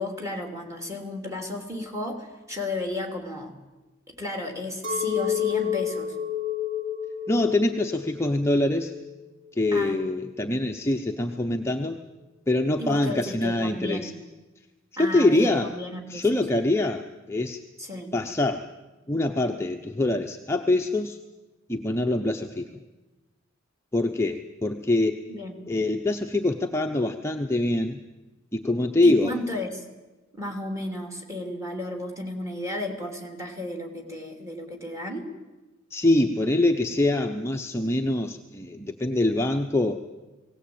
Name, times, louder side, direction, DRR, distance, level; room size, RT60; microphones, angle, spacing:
voice 1, 0.0-3.5 4.1-6.1 9.7-10.0 12.8-14.2 15.0-16.3 17.8-18.1 25.3-25.6 29.0-29.8 30.3-35.3, left 1 dB, 15° right, 3 dB, 3.0 m, -33 dB
Chink clink, 4.8-10.3, left 8 dB, 60° right, 3.2 m, -30 dB
voice 2, 7.3-8.9 9.5-12.0 12.5-14.1 15.0-15.7 16.1-17.6 18.1-18.7 19.1-21.2 21.7-22.7 23.9-25.2 25.7-28.0 28.5-29.4 35.9-40.0, left 2 dB, 15° left, 3 dB, 0.7 m, -24 dB
19.5 x 17.5 x 8.7 m, 1.1 s
head